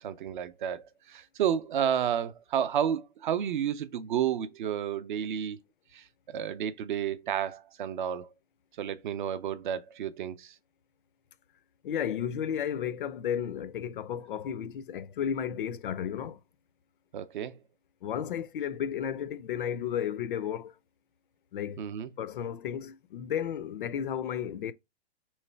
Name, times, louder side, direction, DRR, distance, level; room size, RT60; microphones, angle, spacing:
voice 1, 0.0-5.6 5.9-8.3 8.8-10.6 17.1-17.6 21.8-22.1, right 9 dB, 50° right, 0.6 m, -31 dB
voice 2, 11.8-16.4 18.0-20.7 21.5-21.9 22.2-24.7, left 9 dB, 50° left, 0.5 m, -33 dB
3.2 x 3.2 x 4.3 m
hypercardioid pair, 145°, 33 cm